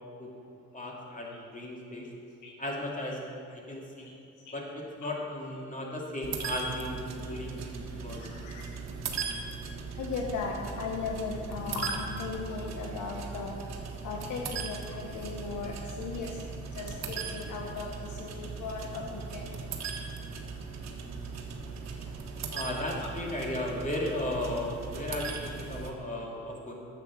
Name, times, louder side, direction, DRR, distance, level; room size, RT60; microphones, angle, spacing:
voice 1, 0.7-2.1 2.6-3.2 3.5-4.1 4.5-8.3 22.5-26.7, left 1 dB, 25° left, -2 dB, 2.6 m, -35 dB
sound 1, 6.2-25.9, right 5 dB, 60° right, 1.4 m, -39 dB
voice 2, 8.1-8.7 9.9-13.6 14.0-19.6 23.0-23.1, left 4 dB, 80° left, 0 dB, 1.2 m, -37 dB
10.5 x 7.6 x 7.3 m, 2.5 s
cardioid pair, 90°, 30 cm